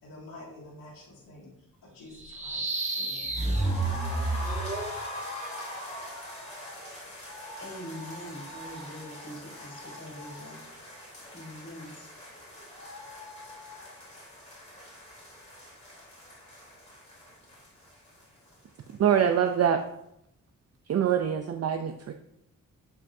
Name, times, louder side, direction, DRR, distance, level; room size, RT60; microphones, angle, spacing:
voice 1, 0.0-3.5, left 2 dB, 80° left, -5 dB, 2.2 m, -49 dB
sound 1, 2.1-5.0, right 2 dB, 20° right, 1.1 m, -30 dB
sound 2, 3.3-19.2 19.5-19.6 19.9-20.0, left 1 dB, 20° left, 3.4 m, -43 dB
voice 2, 7.6-10.6 11.3-12.1, equal, 45° left, -3 dB, 3.4 m, -43 dB
voice 3, 19.0-19.8 20.9-22.1, right 9 dB, 50° right, 7 dB, 0.5 m, -24 dB
11.5 x 5.8 x 2.7 m, 0.77 s
wide cardioid pair, 145°, 34 cm